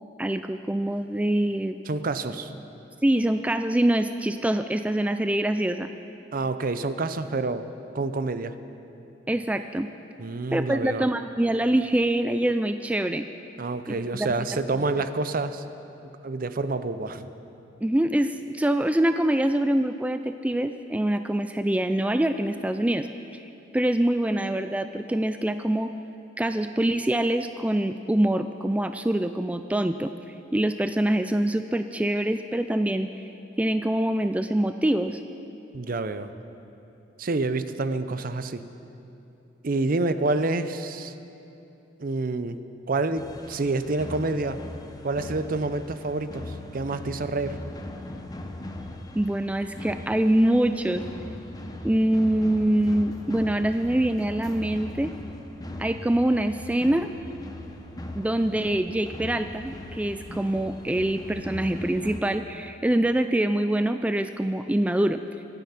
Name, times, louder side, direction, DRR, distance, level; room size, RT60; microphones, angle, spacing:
voice 1, 0.2-1.8 3.0-5.9 9.3-9.9 10.5-13.3 13.9-14.8 17.8-23.1 23.7-25.9 26.4-30.1 30.5-33.1 33.6-35.2 49.2-51.0 51.8-55.1 55.8-57.1 58.2-65.2, right 1 dB, 10° right, 9 dB, 0.3 m, -24 dB
voice 2, 1.9-2.6 6.3-7.7 7.9-8.5 10.2-11.1 13.6-15.6 16.2-17.3 35.7-36.3 37.2-38.6 39.6-41.1 42.0-42.6 42.9-44.6 45.0-47.6, right 3 dB, 50° right, 11 dB, 0.6 m, -28 dB
sound 1, 43.2-62.2, left 1 dB, 20° left, 1.0 m, -40 dB
25.0 x 9.3 x 5.8 m, 2.9 s
head